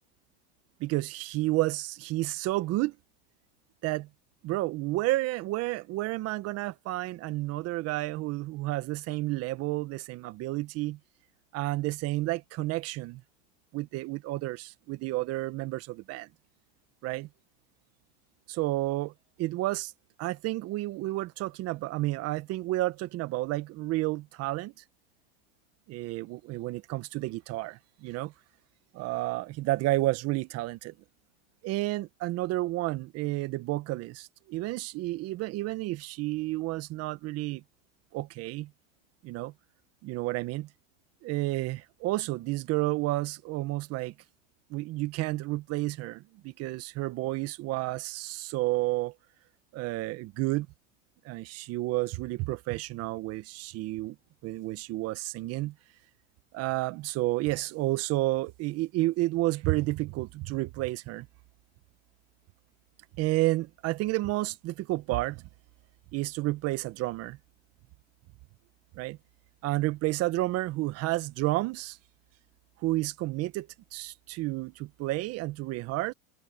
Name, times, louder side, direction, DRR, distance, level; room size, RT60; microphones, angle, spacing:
voice 1, 0.8-2.9 3.8-4.1 4.4-11.0 11.5-13.2 13.7-16.3 17.0-17.3 18.5-19.1 19.4-19.9 20.2-24.7 25.9-28.3 28.9-30.9 31.6-37.6 38.1-38.7 39.2-39.5 40.0-40.7 41.2-44.1 44.7-49.1 49.7-50.7 51.2-54.1 54.4-55.7 56.5-61.3 63.2-65.4 66.1-67.4 68.9-69.2 69.6-72.0 72.8-76.1, right 18 dB, 45° right, 1.5 m, -31 dB
supercardioid pair, 125°, 33 cm